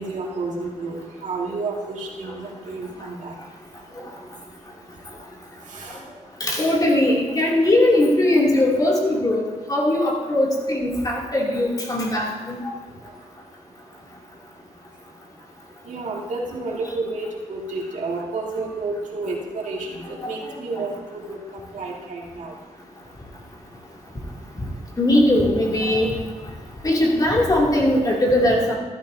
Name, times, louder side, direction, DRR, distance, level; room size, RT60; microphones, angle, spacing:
voice 1, 0.0-3.3 5.7-6.0 15.9-22.5, right 3 dB, 70° right, -3 dB, 2.2 m, -30 dB
voice 2, 6.4-12.7 20.2-20.3 25.0-26.1 26.8-28.8, left 1 dB, 30° left, -3 dB, 2.7 m, -20 dB
14.0 x 13.0 x 2.8 m, 1.3 s
cardioid pair, 100°, 13 cm